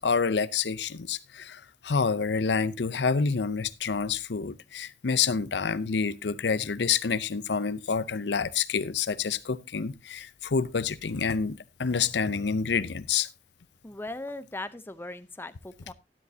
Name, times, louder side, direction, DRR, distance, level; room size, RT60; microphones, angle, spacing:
voice 1, 0.0-13.3, left 5 dB, 75° left, 0.6 m, -28 dB
voice 2, 13.8-15.9, left 2 dB, 15° left, 0.7 m, -39 dB
12.5 x 12.0 x 2.7 m
head